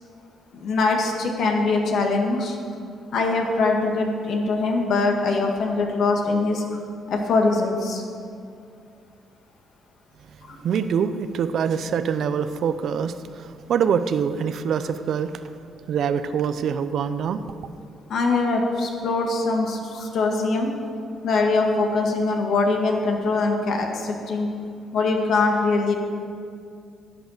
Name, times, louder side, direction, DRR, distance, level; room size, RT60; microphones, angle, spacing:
voice 1, 0.5-2.6 3.1-6.8 7.1-8.0 10.5-10.6 18.1-20.7 21.2-24.5 24.9-26.0, left 3 dB, 70° left, 1 dB, 1.9 m, -22 dB
voice 2, 10.6-15.4 15.9-17.4, right 7 dB, 65° right, 11 dB, 0.6 m, -24 dB
11.5 x 8.0 x 6.6 m, 2.4 s
cardioid pair, 90°, 0 cm